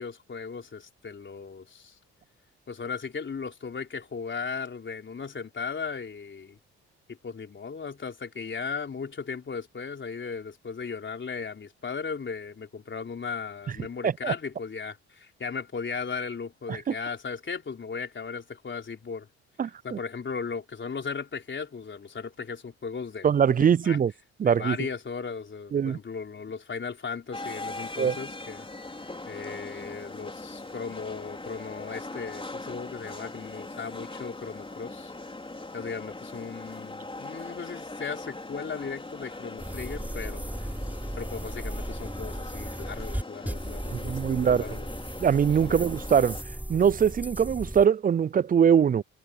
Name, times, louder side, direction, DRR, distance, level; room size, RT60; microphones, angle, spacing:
voice 1, 0.0-2.0 2.7-6.6 7.1-19.3 19.8-24.0 24.4-28.7 29.3-35.1 35.7-40.5 41.2-44.9 45.7-45.9, left 5 dB, 40° left, 3.9 m, -37 dB
voice 2, 19.6-20.0 23.2-24.1 24.4-24.8 25.7-26.0 28.0-28.1 43.9-44.6 45.2-46.4 46.7-49.0, right 7 dB, 30° right, 0.4 m, -22 dB
sound 1, 27.3-46.4, left 2 dB, 15° left, 4.3 m, -41 dB
sound 2, 39.6-47.8, right 1 dB, 5° right, 3.5 m, -36 dB
supercardioid pair, 65°, 30 cm